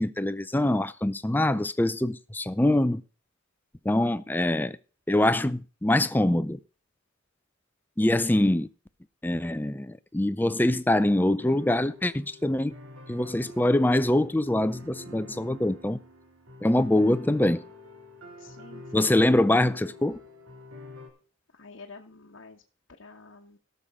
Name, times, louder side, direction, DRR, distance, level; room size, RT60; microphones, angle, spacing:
voice 1, 0.0-3.0 3.8-4.8 5.1-6.6 8.0-8.7 9.2-12.7 13.1-16.0 16.6-17.6 18.9-20.2, left 1 dB, 10° left, 0.5 m, -24 dB
sound 1, 11.4-21.1, left 1 dB, 90° right, 2.8 m, -46 dB
voice 2, 18.4-18.8 21.5-22.6 23.0-23.6, left 3 dB, 70° left, 1.1 m, -48 dB
18.0 x 6.8 x 3.6 m
head